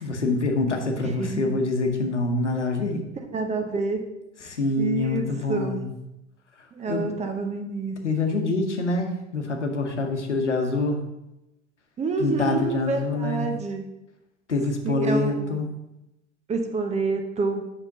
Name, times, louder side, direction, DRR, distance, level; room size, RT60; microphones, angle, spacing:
voice 1, 0.0-3.0 4.4-5.9 6.9-7.1 8.0-11.0 12.2-13.5 14.5-15.7, left 2 dB, 85° left, 4 dB, 1.0 m, -25 dB
voice 2, 1.0-1.5 3.3-4.0 4.8-5.9 6.7-8.0 12.0-13.9 14.8-15.6 16.5-17.7, right 4 dB, 20° right, 5 dB, 0.8 m, -28 dB
7.9 x 5.8 x 2.8 m, 0.92 s
figure-of-eight pair, 85°, 34 cm